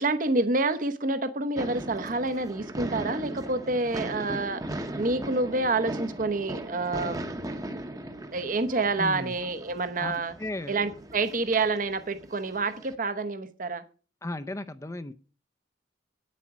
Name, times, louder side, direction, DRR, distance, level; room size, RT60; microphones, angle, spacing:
voice 1, 0.0-7.3 8.3-10.3 10.7-13.8, right 3 dB, 50° right, 0.9 m, -28 dB
sound 1, 1.6-12.9, right 1 dB, 20° right, 0.9 m, -38 dB
voice 2, 9.0-9.3 10.0-10.1 10.4-10.7 14.2-15.1, left 2 dB, 15° left, 0.5 m, -34 dB
9.1 x 8.5 x 6.0 m
head